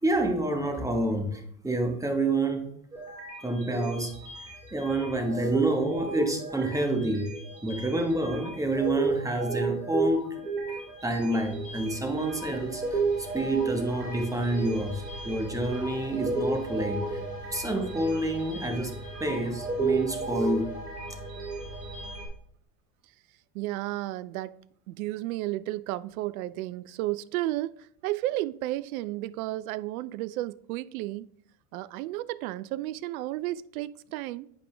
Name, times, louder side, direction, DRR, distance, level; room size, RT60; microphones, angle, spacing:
voice 1, 0.0-2.7 3.4-7.3 7.6-10.4 10.7-13.0 13.3-17.2 17.5-18.9 19.2-20.7, right 1 dB, 5° right, 1.4 m, -28 dB
sound 1, 2.9-22.3, right 3 dB, 85° right, 2.5 m, -33 dB
voice 2, 23.5-24.6 24.9-31.3 31.7-34.5, right 16 dB, 65° right, 0.5 m, -33 dB
8.9 x 5.0 x 3.4 m
hypercardioid pair, 80°, 46 cm